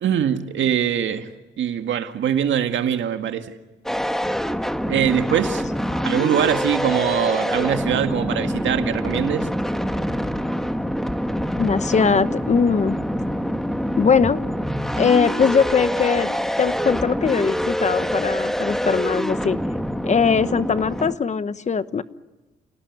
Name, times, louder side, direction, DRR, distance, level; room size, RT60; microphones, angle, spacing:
voice 1, 0.0-1.3 1.6-3.5 4.9-5.6 6.0-9.5, right 9 dB, 70° right, 7 dB, 1.9 m, -22 dB
sound 1, 3.9-21.2, equal, ahead, 1.4 m, -25 dB
voice 2, 11.6-13.0 14.0-14.4 15.0-19.6 20.0-22.0, left 5 dB, 35° left, 14 dB, 1.1 m, -21 dB
30.0 x 18.0 x 9.5 m, 1.2 s
cardioid pair, 90°, 20 cm